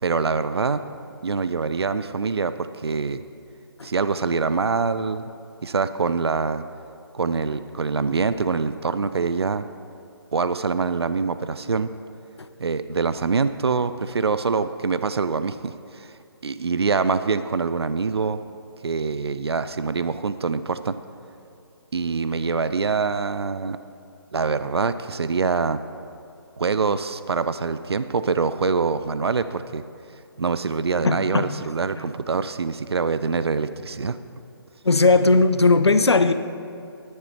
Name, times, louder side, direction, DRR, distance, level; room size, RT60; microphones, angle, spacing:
voice 1, 0.0-0.8 1.2-3.2 3.8-5.3 5.6-6.6 7.1-9.7 10.3-11.9 12.6-16.1 16.4-18.4 18.8-21.0 21.9-23.8 24.3-25.8 26.6-29.8 30.4-34.2, right 4 dB, 75° right, 12 dB, 0.4 m, -24 dB
voice 2, 31.0-31.5 32.0-32.1 34.8-36.3, left 3 dB, 80° left, 11 dB, 0.6 m, -18 dB
10.5 x 9.5 x 4.3 m, 2.7 s
figure-of-eight pair, 145°, 14 cm